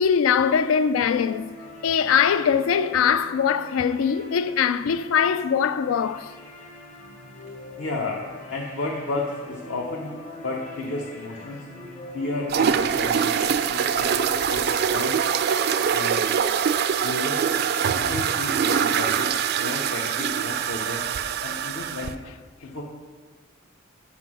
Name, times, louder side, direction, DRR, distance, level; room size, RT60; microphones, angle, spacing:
voice 1, 0.0-1.5 1.8-6.3, left 7 dB, 90° left, 0.3 m, -22 dB
sound 1, 0.9-12.6, left 1 dB, 40° left, 1.0 m, -43 dB
voice 2, 7.8-8.2 8.5-10.1 10.4-11.6 12.1-15.2 15.9-16.2 17.0-19.3 19.6-21.1 21.4-22.2 22.6-22.8, left 2 dB, 65° left, 0.7 m, -32 dB
sound 2, 12.5-22.1, right 7 dB, 50° right, 0.3 m, -24 dB
5.9 x 4.9 x 6.0 m
head